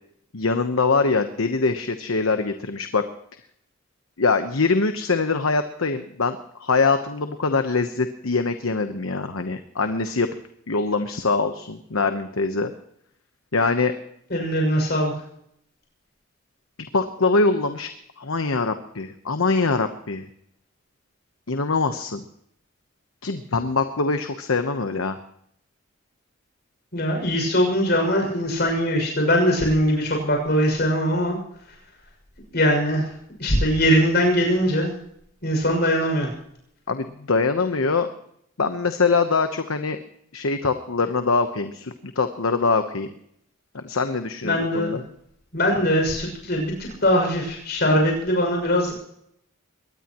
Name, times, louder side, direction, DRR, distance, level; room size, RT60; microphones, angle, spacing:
voice 1, 0.3-3.0 4.2-10.3 10.7-12.7 13.5-13.9 16.8-17.9 18.2-20.3 21.5-22.2 23.2-25.2 36.9-38.1 38.6-40.0 40.3-43.1 43.7-45.0, left 4 dB, 85° left, 8 dB, 1.1 m, -23 dB
voice 2, 14.3-15.1 26.9-31.4 32.5-33.1 33.4-34.9 35.4-36.3 44.4-45.0 45.5-46.7 47.0-48.9, equal, 50° left, 2 dB, 6.4 m, -21 dB
22.5 x 19.5 x 3.1 m, 0.71 s
head